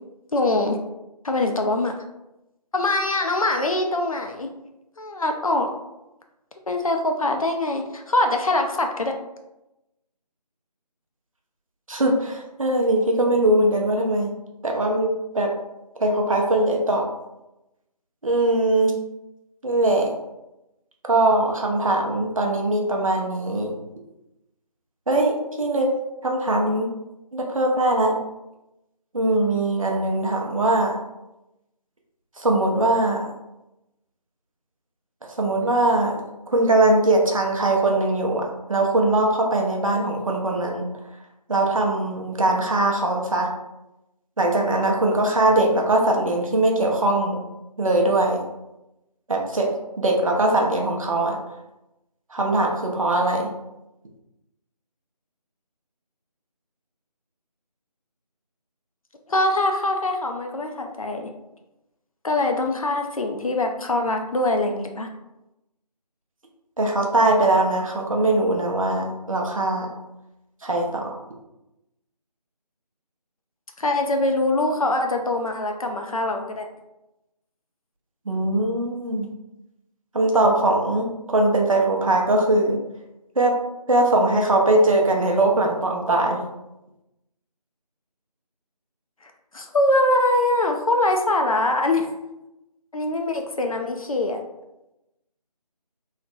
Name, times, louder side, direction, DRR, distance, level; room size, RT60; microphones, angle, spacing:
voice 1, 0.3-0.8 1.2-1.9 2.7-4.5 5.0-5.7 6.7-9.1 59.3-61.3 62.2-65.1 73.8-76.7 89.2-92.1 92.9-94.4, left 2 dB, 55° left, 4 dB, 0.4 m, -23 dB
voice 2, 11.9-14.3 14.6-15.5 16.0-17.1 18.2-18.9 19.6-20.1 21.1-23.7 25.1-25.9 26.2-26.9 27.3-28.1 29.1-31.0 32.4-33.3 35.4-36.2 36.5-40.9 41.5-43.5 44.4-47.4 47.8-48.4 49.3-49.7 50.0-51.4 52.3-53.5 66.8-69.9 70.6-71.2 78.3-79.3 80.1-82.8 83.4-83.5 83.9-86.4, right 2 dB, 55° right, 1 dB, 0.6 m, -21 dB
3.2 x 2.1 x 2.5 m, 0.94 s
figure-of-eight pair, 165°, 21 cm